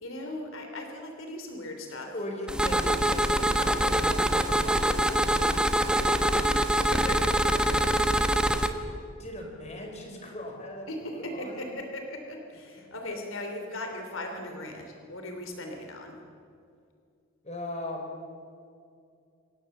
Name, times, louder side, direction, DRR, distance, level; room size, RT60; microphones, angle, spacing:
voice 1, 0.0-2.1 6.4-8.4 10.9-16.2, left 1 dB, 80° left, 3 dB, 3.1 m, -38 dB
voice 2, 2.1-5.9 7.8-7.9 8.6-8.9 9.2-11.7 17.4-18.1, left 1 dB, 35° left, 2 dB, 4.5 m, -39 dB
sound 1, 2.5-8.7, right 1 dB, 5° right, 1.1 m, -24 dB
25.5 x 18.5 x 7.2 m, 2.4 s
head